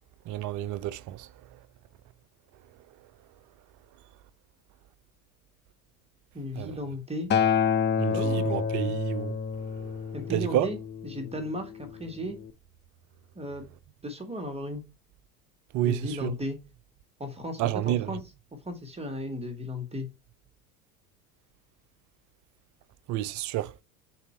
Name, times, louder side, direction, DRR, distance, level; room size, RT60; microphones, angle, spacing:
voice 1, 0.3-1.3 6.6-6.8 8.0-9.3 9.7-10.0 10.3-10.7 15.7-16.3 17.6-18.1 23.1-23.7, right 14 dB, 40° right, 0.6 m, -29 dB
voice 2, 6.3-7.3 8.1-8.5 10.1-10.8 11.0-12.4 13.3-13.6 14.0-14.8 15.8-16.6 17.2-18.2 18.6-20.1, left 1 dB, 15° right, 1.3 m, -35 dB
Acoustic guitar, 7.3-11.6 12.4-12.5, left 7 dB, 25° left, 0.7 m, -28 dB
5.8 x 4.1 x 4.2 m
hypercardioid pair, 75°, 47 cm